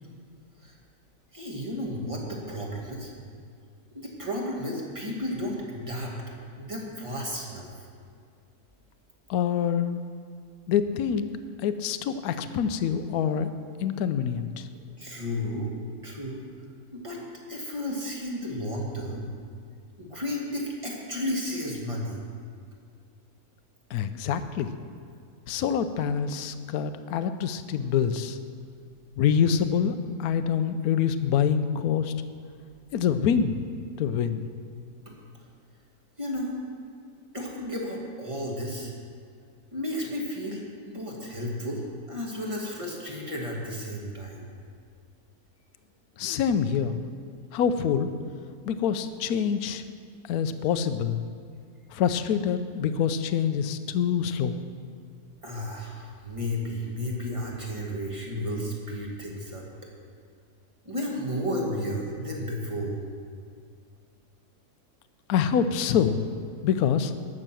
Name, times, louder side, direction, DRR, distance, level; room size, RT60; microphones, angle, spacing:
voice 1, 1.3-3.1 3.9-6.1 6.6-7.6 14.7-15.7 16.0-16.4 16.9-17.2 17.5-19.3 20.0-22.2 35.1-35.2 36.2-36.5 37.3-38.9 39.7-41.8 42.1-44.5 55.4-59.6 60.8-63.0, equal, 20° right, -2 dB, 2.1 m, -33 dB
voice 2, 9.3-9.9 10.7-11.3 11.6-13.5 13.8-14.7 23.9-24.7 25.5-28.4 29.2-29.9 30.2-32.1 32.9-33.6 34.0-34.5 46.2-47.0 47.5-48.1 48.7-49.8 50.3-51.2 51.9-54.6 65.3-66.3 66.6-67.1, left 8 dB, 75° left, 10 dB, 1.1 m, -25 dB
12.0 x 6.6 x 7.6 m, 2.2 s
omnidirectional pair, 1.7 m